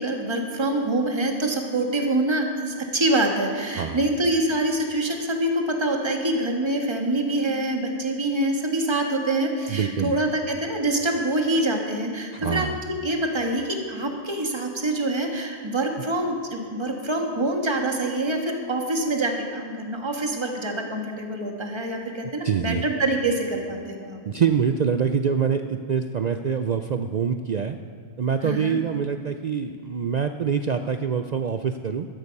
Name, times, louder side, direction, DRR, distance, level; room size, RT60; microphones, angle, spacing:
voice 1, 0.0-24.2 28.4-28.8, right 1 dB, 20° right, 2 dB, 1.6 m, -25 dB
voice 2, 3.8-4.1 9.7-10.2 12.3-12.8 22.4-22.8 24.3-27.8 28.2-32.1, right 6 dB, 60° right, 7 dB, 0.4 m, -25 dB
14.0 x 13.0 x 5.4 m, 2.1 s
omnidirectional pair, 1.3 m